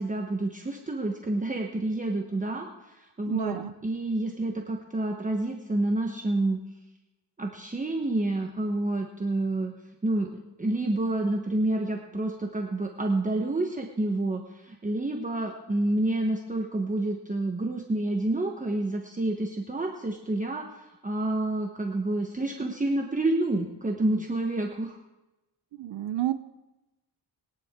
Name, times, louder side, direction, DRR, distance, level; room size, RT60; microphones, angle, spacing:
voice 1, 0.0-3.6 3.8-6.6 7.4-9.7 10.0-10.3 10.6-25.0, right 2 dB, 20° right, 1 dB, 1.1 m, -28 dB
voice 2, 3.3-3.7 25.8-26.3, right 13 dB, 90° right, 13 dB, 0.7 m, -29 dB
21.5 x 10.5 x 3.7 m, 1.0 s
wide cardioid pair, 120°, 42 cm